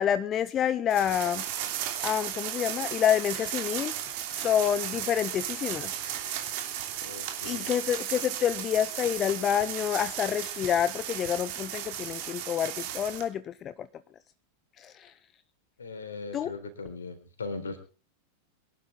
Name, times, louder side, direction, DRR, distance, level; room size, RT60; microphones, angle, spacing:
voice 1, 0.0-1.4 2.0-3.9 4.3-5.9 7.4-13.7 14.8-15.1 16.3-16.5, left 9 dB, 30° left, 14 dB, 0.7 m, -28 dB
sound 1, 0.9-13.3, right 10 dB, 50° right, 2.9 m, -35 dB
voice 2, 7.0-7.8 15.8-17.8, left 3 dB, 70° left, 7 dB, 3.9 m, -39 dB
23.5 x 12.0 x 3.8 m, 0.34 s
figure-of-eight pair, 90°, 0 cm